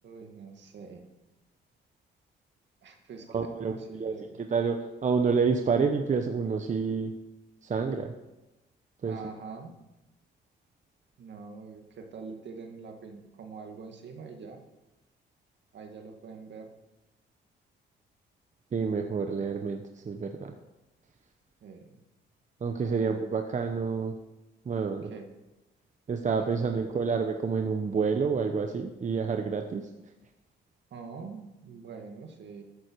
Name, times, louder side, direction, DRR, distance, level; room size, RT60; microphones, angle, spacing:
voice 1, 0.0-1.1 2.8-4.4 9.0-9.7 11.2-14.6 15.7-16.7 21.6-22.0 22.8-23.3 25.1-25.3 26.5-27.0 30.9-32.6, right 5 dB, 65° right, 4 dB, 2.1 m, -44 dB
voice 2, 3.3-3.7 4.0-7.1 7.6-8.1 9.0-9.1 18.7-20.5 22.6-24.1 24.7-25.1 26.1-29.9, right 5 dB, 40° right, 5 dB, 1.0 m, -28 dB
13.5 x 9.5 x 4.7 m, 0.99 s
cardioid pair, 90°, 20 cm